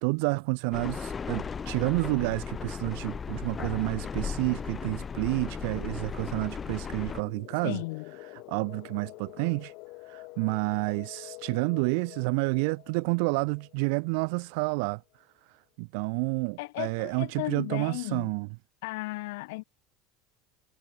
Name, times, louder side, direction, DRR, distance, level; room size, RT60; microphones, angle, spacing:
voice 1, 0.0-7.8 8.3-9.7 10.1-15.0 15.8-18.5, right 34 dB, 70° right, 3.0 m, -29 dB
sound 1, 0.7-7.2, left 6 dB, 20° left, 8.0 m, -36 dB
sound 2, 4.5-15.0, left 26 dB, 60° left, 7.2 m, -48 dB
voice 2, 7.6-8.1 16.6-18.3 18.8-19.6, left 24 dB, 80° left, 2.8 m, -35 dB
cardioid pair, 150°, 0 cm